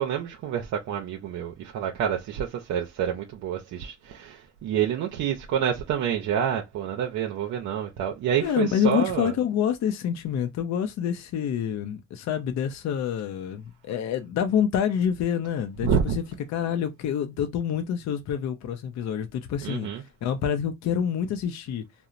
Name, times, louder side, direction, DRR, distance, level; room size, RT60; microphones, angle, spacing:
voice 1, 0.0-9.3 15.8-16.2 19.6-20.0, right 8 dB, 70° right, 0.5 m, -28 dB
voice 2, 8.4-16.2 16.5-21.8, left 8 dB, 65° left, 0.5 m, -27 dB
2.9 x 2.0 x 2.4 m
cardioid pair, 90°, 30 cm